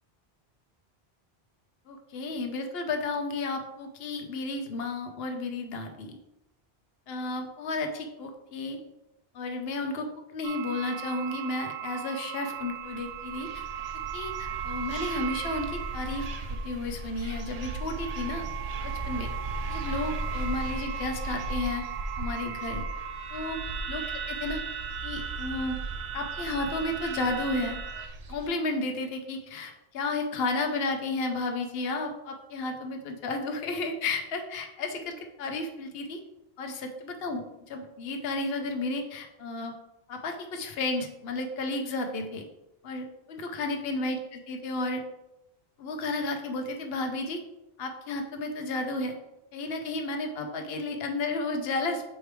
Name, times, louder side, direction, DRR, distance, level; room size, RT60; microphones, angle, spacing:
voice 1, 1.9-6.2 7.1-8.8 9.3-13.6 13.9-18.4 18.8-19.3 19.6-21.8 22.2-22.8 23.3-23.6 23.9-24.6 25.0-25.8 26.1-27.8 28.3-36.2 36.6-39.7 40.1-42.4 42.8-45.0 45.8-47.4 47.8-49.1 49.5-52.0, left 2 dB, 75° left, 4 dB, 0.9 m, -32 dB
sound 1, 10.4-28.1, right 8 dB, 80° right, 0.9 m, -37 dB
sound 2, 12.8-28.5, right 2 dB, 50° right, 0.5 m, -38 dB
6.7 x 4.6 x 3.3 m, 0.91 s
omnidirectional pair, 1.1 m